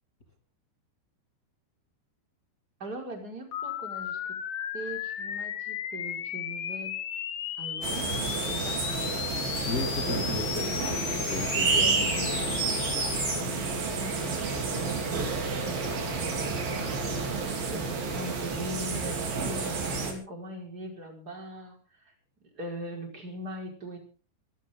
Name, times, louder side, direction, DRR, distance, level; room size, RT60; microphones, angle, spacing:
voice 1, 2.8-4.4 4.7-7.0 7.6-8.9 13.4-17.1 17.7-22.1 22.5-24.0, equal, 20° right, 1 dB, 5.1 m, -41 dB
sound 1, 3.5-13.4, left 10 dB, 70° left, 1.8 m, -35 dB
sound 2, 7.8-20.1, right 4 dB, 50° right, 4.8 m, -30 dB
voice 2, 9.6-12.4, left 3 dB, 35° left, 3 dB, 1.5 m, -34 dB
25.0 x 13.5 x 3.8 m, 0.39 s
omnidirectional pair, 5.5 m